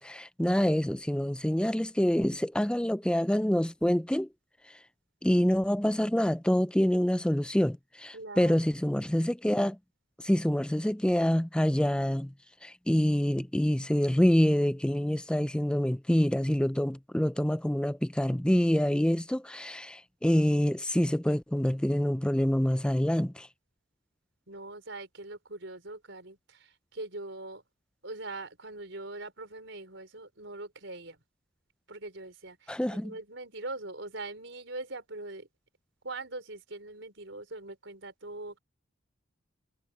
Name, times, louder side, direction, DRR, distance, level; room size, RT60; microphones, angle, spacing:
voice 1, 0.0-4.3 5.2-9.8 10.2-12.3 12.6-23.5 32.7-33.1, equal, 5° left, 0.4 m, -26 dB
voice 2, 8.1-8.6 24.5-27.6 28.0-31.2 31.9-35.5 36.0-38.6, right 2 dB, 65° right, 4.7 m, -42 dB
head